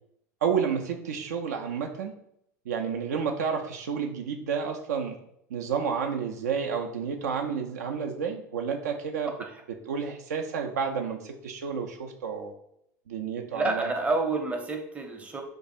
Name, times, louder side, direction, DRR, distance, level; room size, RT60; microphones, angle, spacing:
voice 1, 0.4-2.1 2.7-5.2 5.5-9.3 9.8-12.5 13.1-13.9, right 6 dB, 65° right, 3 dB, 0.4 m, -30 dB
voice 2, 13.5-15.4, right 3 dB, 15° right, 2 dB, 0.6 m, -29 dB
2.6 x 2.3 x 4.1 m, 0.73 s
figure-of-eight pair, 80°, 9 cm